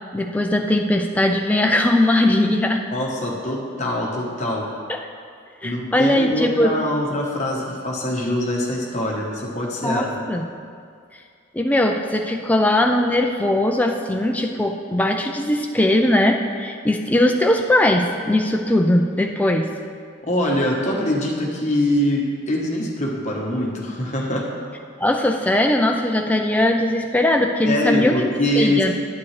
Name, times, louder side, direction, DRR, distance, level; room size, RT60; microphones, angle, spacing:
voice 1, 0.1-2.8 4.9-5.0 5.6-6.8 9.8-10.5 11.5-19.7 25.0-28.1 28.6-28.9, left 1 dB, 5° left, 2 dB, 0.3 m, -19 dB
voice 2, 2.9-4.7 5.6-10.2 20.2-24.5 27.6-28.9, left 1 dB, 35° left, -2 dB, 1.1 m, -23 dB
9.5 x 8.4 x 3.2 m, 2.2 s
head